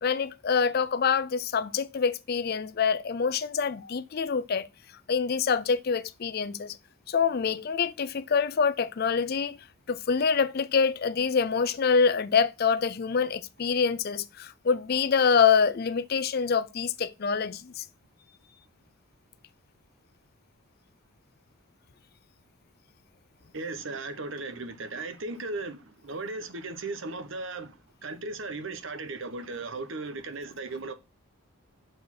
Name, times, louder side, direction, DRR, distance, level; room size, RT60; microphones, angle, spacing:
voice 1, 0.0-4.7 5.1-6.8 7.1-17.8, left 6 dB, 45° left, 0.4 m, -26 dB
voice 2, 23.5-30.9, right 3 dB, 60° right, 1.0 m, -36 dB
6.4 x 4.7 x 5.9 m
head